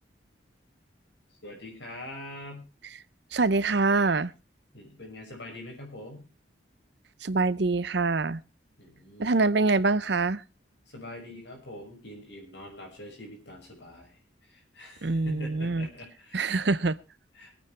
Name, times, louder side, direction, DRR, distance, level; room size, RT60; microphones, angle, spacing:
voice 1, 1.4-2.7 4.7-6.3 8.8-9.3 10.9-16.6 17.3-17.5, left 1 dB, 65° left, 1 dB, 6.2 m, -44 dB
voice 2, 3.3-4.3 7.2-8.4 9.2-10.4 15.0-15.9 16.3-17.0, right 3 dB, 60° right, 18 dB, 0.7 m, -25 dB
23.5 x 9.1 x 3.4 m, 0.30 s
head